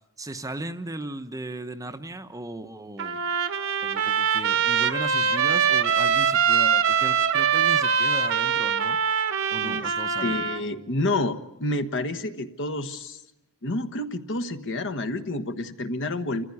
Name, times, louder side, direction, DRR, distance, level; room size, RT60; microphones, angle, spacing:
voice 1, 0.2-3.2 3.8-9.0 9.5-10.4, right 1 dB, 15° right, 0.8 m, -36 dB
Trumpet, 3.0-10.6, right 7 dB, 60° right, 1.2 m, -23 dB
voice 2, 9.6-9.9 10.2-13.2 13.6-16.4, left 2 dB, 55° left, 1.3 m, -29 dB
27.5 x 15.0 x 9.7 m
head